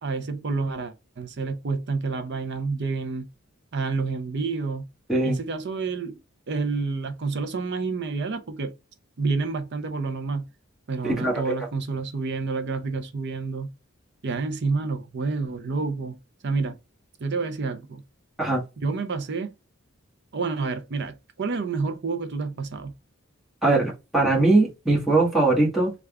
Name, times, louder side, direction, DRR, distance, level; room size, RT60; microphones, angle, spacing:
voice 1, 0.0-3.3 3.7-4.8 5.2-6.2 6.5-8.7 9.2-10.4 10.9-13.7 14.2-16.2 16.4-16.8 17.2-18.0 18.8-19.5 20.3-22.9, right 4 dB, 55° right, 0.6 m, -29 dB
voice 2, 23.6-25.9, right 2 dB, ahead, 1.3 m, -21 dB
3.4 x 2.4 x 3.3 m
head